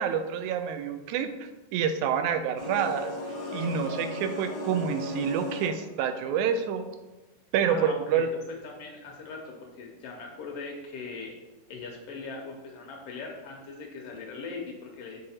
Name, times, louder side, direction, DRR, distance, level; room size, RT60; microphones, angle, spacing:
voice 1, 0.0-3.1 3.5-6.9 7.5-8.3, right 7 dB, 80° right, 8 dB, 1.8 m, -28 dB
sound 1, 2.6-6.0, left 1 dB, 60° left, 1.3 m, -36 dB
voice 2, 7.6-8.3 8.6-11.3 11.7-15.2, left 4 dB, 85° left, 0 dB, 1.3 m, -40 dB
6.6 x 4.0 x 4.2 m, 1.1 s
omnidirectional pair, 3.8 m